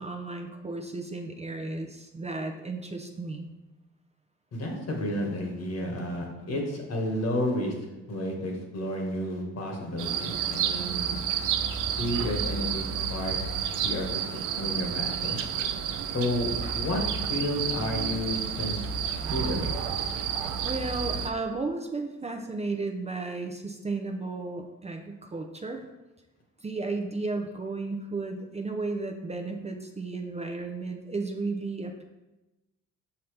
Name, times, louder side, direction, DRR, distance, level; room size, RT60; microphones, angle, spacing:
voice 1, 0.0-3.5 20.6-25.8 26.6-32.0, right 3 dB, 20° right, 4 dB, 0.6 m, -34 dB
voice 2, 4.5-7.7 8.1-11.1 12.0-13.3 13.8-15.4 16.1-17.0 17.3-18.8 19.3-19.7, left 1 dB, 55° left, 1 dB, 1.6 m, -31 dB
sound 1, 10.0-21.3, right 7 dB, 85° right, 0.5 m, -30 dB
5.7 x 5.5 x 3.3 m, 1.0 s
cardioid pair, 90°, 30 cm